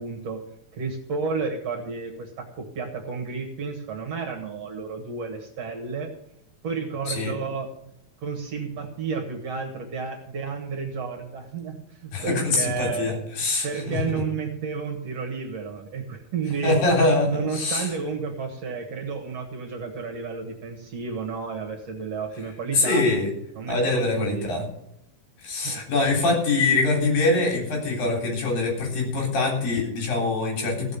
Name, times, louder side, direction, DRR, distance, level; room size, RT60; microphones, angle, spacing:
voice 1, 0.0-6.1 6.6-7.7 8.2-11.7 12.0-13.2 13.6-16.8 17.3-23.0 23.6-24.7 25.6-25.8, right 5 dB, 55° right, 3 dB, 2.3 m, -31 dB
voice 2, 12.1-14.0 16.6-17.9 22.7-23.3 23.7-24.6 25.4-31.0, left 3 dB, 75° left, -1 dB, 5.4 m, -24 dB
16.5 x 6.3 x 6.9 m, 0.78 s
omnidirectional pair, 4.1 m